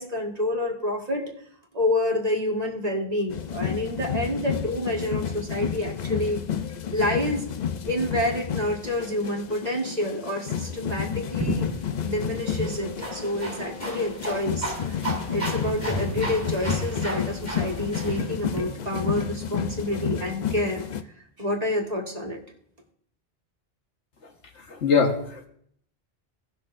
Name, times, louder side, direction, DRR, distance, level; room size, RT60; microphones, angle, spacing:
voice 1, 0.0-1.3 1.7-6.4 6.9-7.4 7.9-11.7 12.0-14.7 15.0-20.9 21.4-22.4, left 1 dB, 35° right, 0 dB, 1.6 m, -28 dB
sound 1, 3.3-21.0, left 8 dB, 50° left, 0.6 m, -31 dB
sound 2, 11.4-18.6, right 1 dB, 15° left, 4.0 m, -33 dB
voice 2, 24.7-25.5, left 5 dB, 85° left, 2 dB, 1.6 m, -22 dB
18.0 x 6.1 x 2.5 m, 0.66 s
omnidirectional pair, 1.1 m